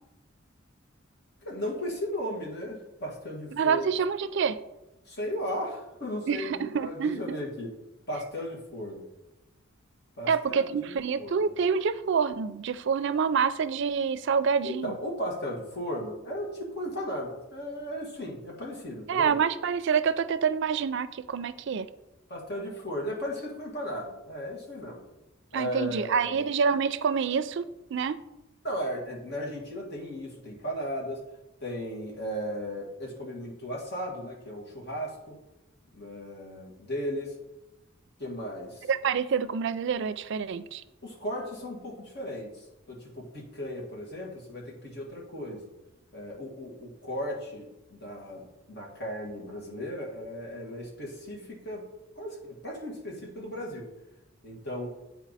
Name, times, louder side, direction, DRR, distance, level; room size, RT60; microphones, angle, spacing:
voice 1, 1.4-3.9 5.1-7.7 8.1-9.1 10.2-11.5 14.6-19.4 22.3-25.0 25.5-26.4 28.6-31.2 31.6-35.4 35.9-37.3 38.2-38.9 41.0-45.7 46.1-51.9 52.2-53.9 54.4-54.9, equal, 55° left, -2 dB, 2.1 m, -36 dB
voice 2, 3.5-4.6 6.3-7.4 10.3-14.9 19.1-21.9 25.5-28.2 38.9-40.8, right 6 dB, 60° right, 13 dB, 0.4 m, -27 dB
9.1 x 4.6 x 4.1 m, 0.96 s
head